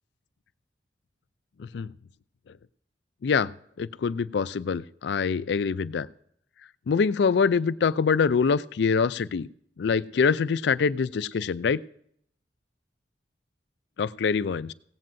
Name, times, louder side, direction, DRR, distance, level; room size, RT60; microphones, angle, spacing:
voice 1, 3.8-6.1 6.9-9.5 9.8-11.8 14.0-14.7, left 5 dB, 70° left, 17 dB, 0.4 m, -24 dB
16.5 x 15.0 x 2.6 m, 0.66 s
head